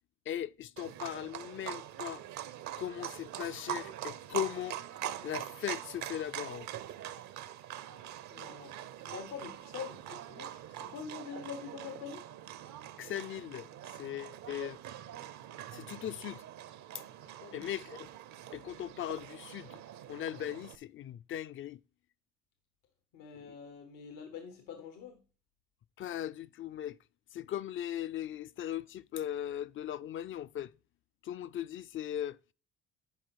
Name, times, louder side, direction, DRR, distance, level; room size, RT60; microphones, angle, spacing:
voice 1, 0.3-2.2 2.8-4.8 5.2-6.7 13.0-14.8 15.7-16.4 17.5-18.1 18.5-19.8 20.1-21.8 26.0-27.0 27.3-30.7 31.2-32.4, left 11 dB, 40° left, 0.4 m, -38 dB
Livestock farm animals working animals, 0.8-20.8, right 12 dB, 65° right, 0.7 m, -43 dB
voice 2, 8.3-8.8 9.1-12.2 17.3-17.7 23.1-25.2, left 7 dB, 85° left, 1.0 m, -45 dB
10.5 x 4.7 x 4.6 m
supercardioid pair, 75°, 31 cm